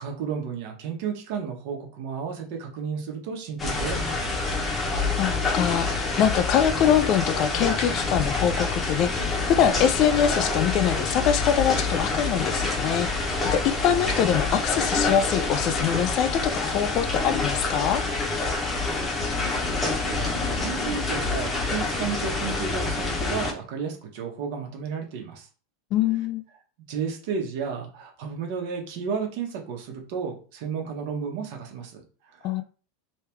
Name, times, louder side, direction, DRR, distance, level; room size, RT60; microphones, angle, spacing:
voice 1, 0.0-4.6 19.0-25.5 26.9-32.0 32.4-32.5, right 6 dB, 60° right, 2 dB, 1.2 m, -33 dB
sound 1, 3.6-23.5, left 3 dB, 15° left, 0.9 m, -27 dB
voice 2, 5.2-13.1 13.5-18.0 25.9-26.4 32.4-32.6, left 9 dB, 40° left, 11 dB, 0.3 m, -24 dB
3.2 x 3.0 x 3.4 m, 0.38 s
supercardioid pair, 150°, 0 cm